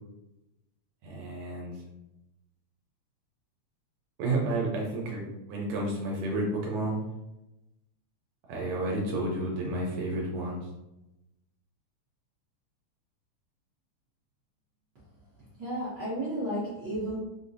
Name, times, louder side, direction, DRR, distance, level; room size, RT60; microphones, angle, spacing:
voice 1, 1.0-1.7 4.2-7.0 8.5-10.7, right 2 dB, 85° right, -2 dB, 2.0 m, -31 dB
voice 2, 15.6-17.2, right 1 dB, 70° right, -9 dB, 1.0 m, -32 dB
4.8 x 2.0 x 2.6 m, 0.94 s
omnidirectional pair, 3.3 m